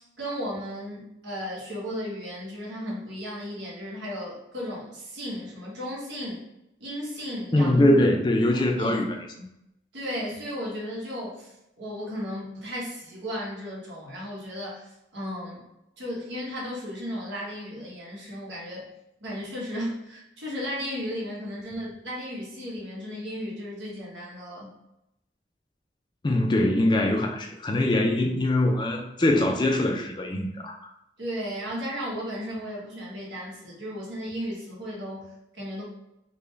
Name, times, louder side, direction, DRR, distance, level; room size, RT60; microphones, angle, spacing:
voice 1, 0.0-6.4 6.8-7.7 8.5-9.0 9.4-9.5 9.9-15.6 16.0-18.9 19.2-24.7 31.2-35.8, equal, 85° right, -5 dB, 1.3 m, -35 dB
voice 2, 7.5-9.2 26.2-30.9, left 1 dB, 25° left, 3 dB, 0.4 m, -22 dB
3.8 x 2.2 x 3.3 m, 0.86 s
head